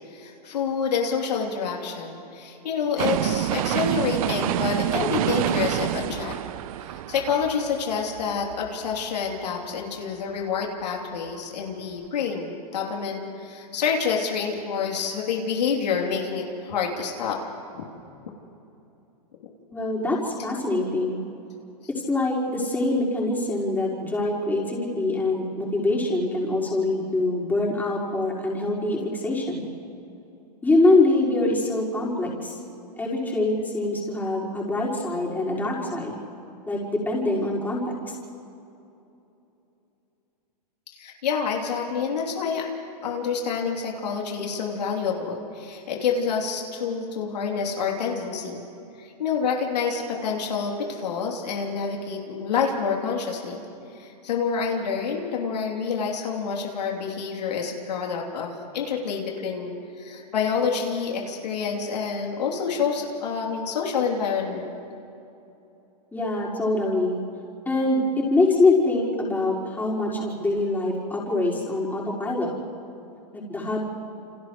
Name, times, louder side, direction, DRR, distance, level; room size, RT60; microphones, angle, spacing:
voice 1, 0.1-6.4 6.9-17.4 17.8-17.9 40.9-42.7 43.0-48.7 49.0-53.6 53.9-64.7, left 6 dB, 80° left, -1 dB, 3.3 m, -28 dB
sound 1, 3.0-9.0 9.4-9.5, right 13 dB, 60° right, 0.7 m, -27 dB
voice 2, 19.7-21.2 21.9-29.7 30.6-32.6 33.0-36.1 36.7-38.1 66.1-67.2 67.6-72.5 73.3-73.8, left 2 dB, 10° left, -5 dB, 5.0 m, -24 dB
29.0 x 28.0 x 3.2 m, 2.8 s
hypercardioid pair, 130°, 21 cm